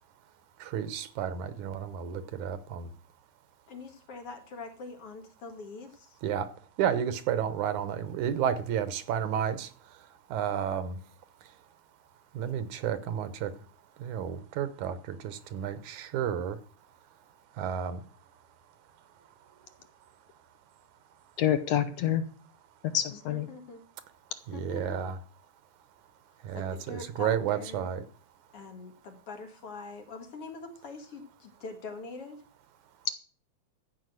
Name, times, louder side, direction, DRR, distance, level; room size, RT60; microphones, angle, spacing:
voice 1, 0.6-2.9 6.2-6.5 6.8-9.7 10.3-10.9 12.4-13.5 14.0-16.6 17.6-18.0 24.5-25.2 26.5-28.0, right 9 dB, 85° right, 2.5 m, -31 dB
voice 2, 3.7-6.2 23.1-23.8 24.5-25.0 26.5-27.9 28.5-32.4, left 3 dB, 55° left, 2.6 m, -43 dB
voice 3, 21.4-22.2 22.9-23.5, left 11 dB, 70° left, 1.9 m, -27 dB
14.5 x 5.6 x 7.8 m
omnidirectional pair, 3.3 m